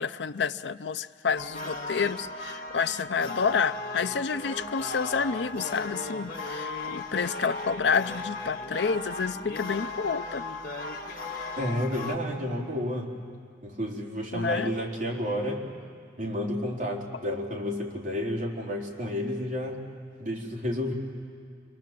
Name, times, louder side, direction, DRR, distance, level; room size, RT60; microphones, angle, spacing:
voice 1, 0.0-10.4 14.3-14.7, left 5 dB, 75° left, 13 dB, 0.6 m, -29 dB
sound 1, 1.3-12.2, left 3 dB, 45° left, 1.9 m, -36 dB
voice 2, 11.6-13.1 13.6-15.7 16.2-19.8 20.2-20.9, left 1 dB, 45° right, -3 dB, 4.0 m, -31 dB
29.0 x 22.5 x 7.6 m, 2.2 s
head